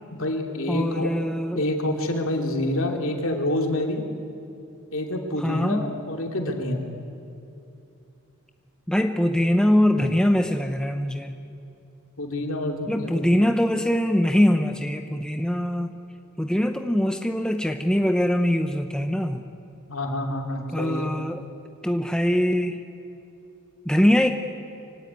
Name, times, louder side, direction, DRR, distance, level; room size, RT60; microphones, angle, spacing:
voice 1, 0.1-1.1 1.5-4.0 4.9-6.8 12.2-13.2 19.9-21.1, left 1 dB, 65° left, 2 dB, 2.9 m, -27 dB
voice 2, 0.7-1.6 5.4-5.8 8.9-11.3 12.9-16.0 16.4-19.4 20.7-21.4 21.8-22.8 23.9-24.3, left 1 dB, 5° left, 6 dB, 0.7 m, -22 dB
24.5 x 16.5 x 9.5 m, 2.7 s
head